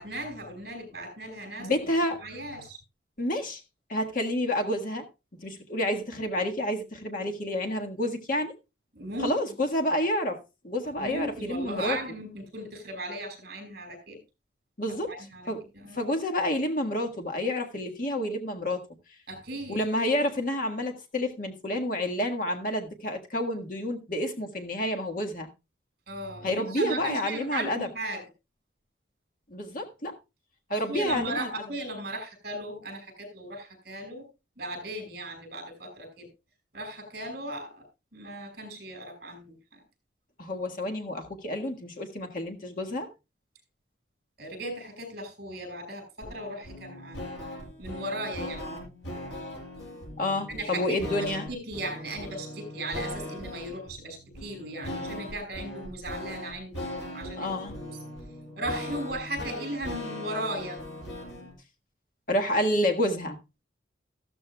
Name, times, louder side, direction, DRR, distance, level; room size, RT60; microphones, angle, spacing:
voice 1, 0.0-1.9 2.2-2.8 8.9-9.4 10.8-14.2 15.1-16.0 19.3-19.8 26.1-28.2 30.7-34.3 34.6-36.3 36.7-37.8 38.1-39.8 44.4-47.2 47.8-48.8 50.5-58.0 58.6-60.8, right 1 dB, 55° right, 5.4 m, -37 dB
voice 2, 1.6-2.2 3.2-3.6 3.9-5.1 5.3-8.5 9.2-12.0 14.8-15.1 15.5-15.6 15.9-18.8 19.7-25.5 26.4-27.9 29.5-30.2 30.7-31.6 40.4-43.1 48.4-48.8 50.2-51.5 57.4-57.8 62.3-63.4, left 1 dB, 45° left, 1.6 m, -29 dB
sound 1, 46.2-61.5, left 1 dB, 85° left, 5.6 m, -39 dB
14.0 x 13.0 x 2.3 m
head